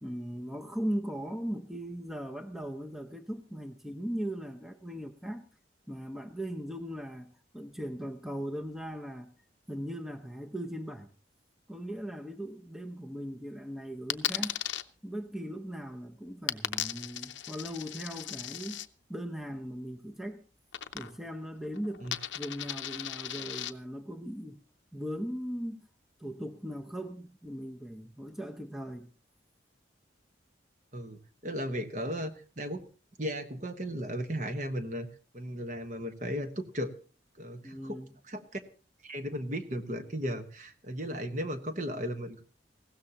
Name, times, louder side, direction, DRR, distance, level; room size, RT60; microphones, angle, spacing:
voice 1, 0.0-5.5 5.9-9.3 9.7-11.1 11.7-14.6 15.0-18.8 19.1-20.4 20.9-22.1 22.3-24.6 24.9-25.8 26.2-29.1 37.6-38.1, equal, ahead, 5 dB, 0.7 m, -38 dB
Coin (dropping), 14.1-14.8 16.5-18.9 20.7-21.4 21.6-23.7, left 12 dB, 80° left, 0.6 m, -36 dB
voice 2, 30.9-32.8 33.2-35.1 35.3-36.9 37.4-38.6 39.0-42.4, equal, 40° right, 7 dB, 1.2 m, -36 dB
19.5 x 16.0 x 2.9 m, 0.38 s
head